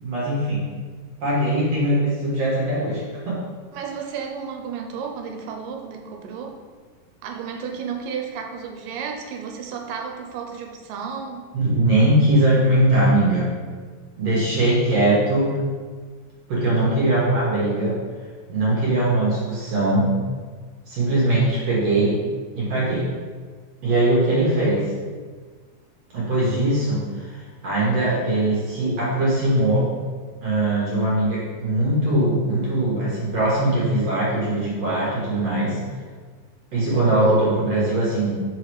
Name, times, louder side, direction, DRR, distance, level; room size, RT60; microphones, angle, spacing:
voice 1, 0.0-0.7 1.2-3.4 11.5-13.5 14.2-15.6 16.5-18.0 18.5-20.1 20.9-22.2 22.6-23.1 23.8-24.9 26.1-29.9 30.4-35.8 36.7-38.4, right 1 dB, 55° right, -7 dB, 2.1 m, -21 dB
voice 2, 3.7-6.6 7.2-11.5 37.0-37.4, right 6 dB, 80° right, 3 dB, 2.3 m, -33 dB
5.2 x 4.8 x 4.7 m, 1.5 s
omnidirectional pair, 4.0 m